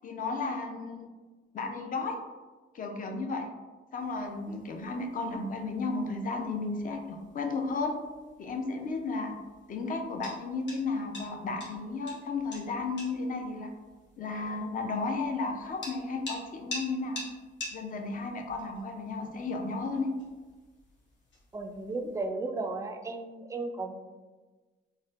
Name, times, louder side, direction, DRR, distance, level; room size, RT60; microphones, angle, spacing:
voice 1, 0.0-1.1 1.5-2.2 2.7-3.5 3.9-8.0 8.4-9.4 9.7-13.7 14.2-17.2 17.7-20.1, left 3 dB, 45° left, 3 dB, 0.5 m, -33 dB
sound 1, 4.0-22.3, left 1 dB, 65° left, 1.2 m, -48 dB
voice 2, 21.5-23.9, right 3 dB, 15° right, 5 dB, 0.3 m, -34 dB
4.2 x 2.1 x 2.5 m, 1.3 s
cardioid pair, 90°, 20 cm